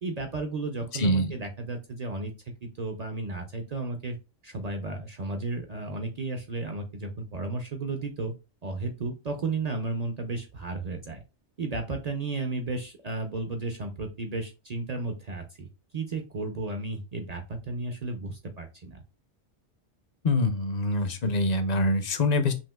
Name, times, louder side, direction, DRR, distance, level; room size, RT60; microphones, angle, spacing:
voice 1, 0.0-2.3 2.6-4.2 4.4-8.3 8.6-11.2 11.6-19.0, right 3 dB, 50° right, 5 dB, 0.5 m, -33 dB
voice 2, 0.9-1.4 20.2-22.5, left 1 dB, 50° left, 8 dB, 0.5 m, -25 dB
5.6 x 2.7 x 2.2 m, 0.29 s
omnidirectional pair, 1.2 m